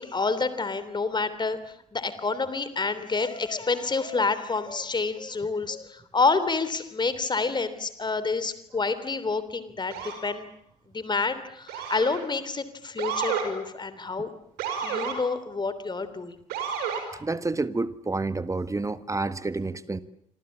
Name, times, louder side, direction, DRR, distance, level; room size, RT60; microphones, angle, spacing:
voice 1, 0.0-10.5 10.9-14.3 14.8-16.4, left 4 dB, 25° left, 14 dB, 3.3 m, -28 dB
Motor vehicle (road) / Siren, 9.9-10.3 11.7-12.2 13.0-13.5 14.6-15.2 16.5-17.0, right 7 dB, 65° right, 5.8 m, -30 dB
voice 2, 17.1-20.0, right 3 dB, 20° right, 14 dB, 1.5 m, -29 dB
28.0 x 26.0 x 7.3 m, 0.72 s
figure-of-eight pair, 50°, 18 cm